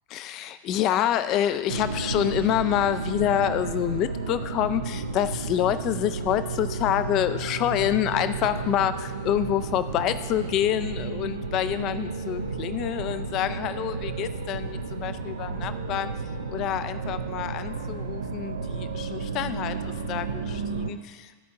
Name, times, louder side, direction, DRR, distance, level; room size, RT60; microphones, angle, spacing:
voice 1, 0.1-16.1 16.5-21.4, left 11 dB, 35° left, 12 dB, 0.4 m, -27 dB
sound 1, 1.7-20.9, right 4 dB, 70° right, 0.6 m, -32 dB
13.5 x 4.6 x 3.6 m, 1.5 s
figure-of-eight pair, 90°, 0 cm